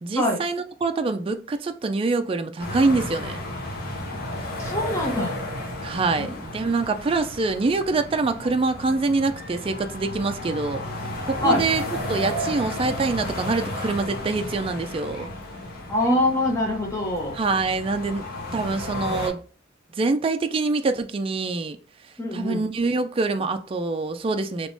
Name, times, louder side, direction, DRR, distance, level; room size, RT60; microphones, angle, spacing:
voice 1, 0.0-3.4 5.8-10.8 11.3-11.8 12.1-15.3 17.3-18.2 18.5-19.4 20.0-21.8 22.3-24.7, right 3 dB, 30° right, 0.3 m, -25 dB
sound 1, 2.6-19.3, left 1 dB, 50° left, 1.1 m, -33 dB
voice 2, 4.6-5.4 6.1-6.4 11.4-11.6 15.9-17.3 22.2-22.7, left 1 dB, 15° left, 0.8 m, -24 dB
3.5 x 3.0 x 2.6 m
head